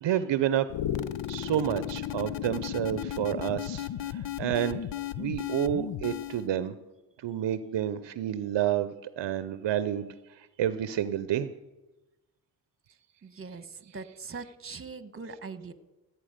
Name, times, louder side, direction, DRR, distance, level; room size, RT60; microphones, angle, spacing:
voice 1, 0.0-0.7 1.3-4.8 5.2-6.7 7.2-11.5 13.9-14.0, right 11 dB, 60° right, 14 dB, 0.7 m, -30 dB
sound 1, 0.7-6.5, left 11 dB, 65° left, 0.7 m, -34 dB
voice 2, 13.2-13.6 13.9-15.7, right 4 dB, 25° right, 13 dB, 1.2 m, -41 dB
16.0 x 8.3 x 5.1 m, 1.1 s
supercardioid pair, 45°, 47 cm